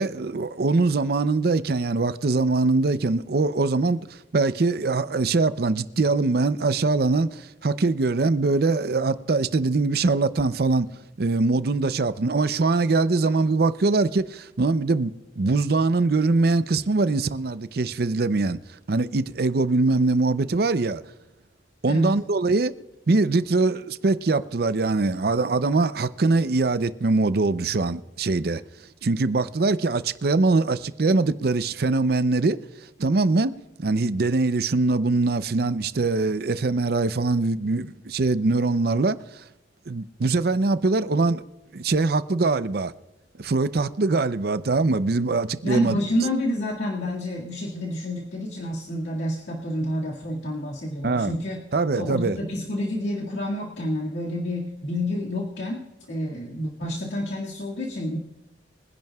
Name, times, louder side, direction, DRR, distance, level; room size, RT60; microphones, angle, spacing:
voice 1, 0.0-4.0 4.3-10.9 11.2-18.6 18.9-21.0 21.8-22.7 23.1-28.6 29.0-32.6 33.0-33.5 33.8-39.4 39.9-41.4 41.7-42.9 43.4-46.0 51.0-51.3 51.7-52.4, right 3 dB, 60° right, 0.5 m, -22 dB
voice 2, 21.9-22.2 45.6-51.6 51.9-55.8 56.1-58.2, left 1 dB, 85° left, 2.0 m, -29 dB
23.5 x 10.5 x 2.3 m
head